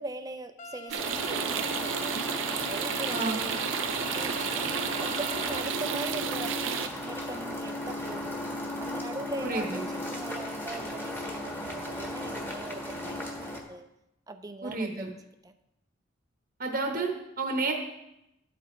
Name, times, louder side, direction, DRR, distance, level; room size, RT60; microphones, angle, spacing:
voice 1, 0.0-2.2 2.7-4.7 5.0-8.3 8.8-13.8 14.3-15.2 15.4-15.5, right 2 dB, 20° right, 9 dB, 0.4 m, -41 dB
sound 1, 0.6-5.6, left 1 dB, 45° left, 0.5 m, -42 dB
sound 2, 0.9-6.9, right 7 dB, 90° right, 0.6 m, -32 dB
sound 3, 1.0-13.6, left 1 dB, 10° left, 1.4 m, -36 dB
voice 2, 9.4-9.8 14.6-15.1 16.6-17.7, right 3 dB, 50° right, 2 dB, 0.9 m, -30 dB
11.5 x 8.4 x 3.1 m, 0.87 s
head